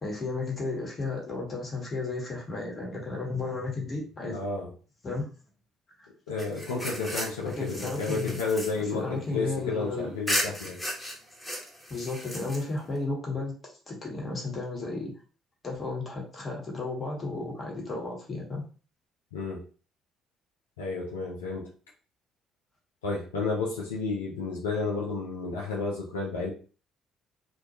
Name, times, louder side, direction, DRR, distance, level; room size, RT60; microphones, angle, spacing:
voice 1, 0.0-4.4 5.0-5.2 6.0-6.1 7.5-8.4 8.9-10.1 11.9-13.5 13.9-15.1 15.6-18.6, left 3 dB, 40° left, -2 dB, 1.0 m, -33 dB
voice 2, 4.3-4.7 6.3-10.8 19.3-19.6 20.8-21.7 23.0-26.5, left 4 dB, 80° left, -4 dB, 0.4 m, -31 dB
sound 1, 6.4-9.8 10.3-13.0, equal, 10° left, 1.0 m, -35 dB
2.2 x 2.2 x 2.7 m, 0.38 s
figure-of-eight pair, 50°, 0 cm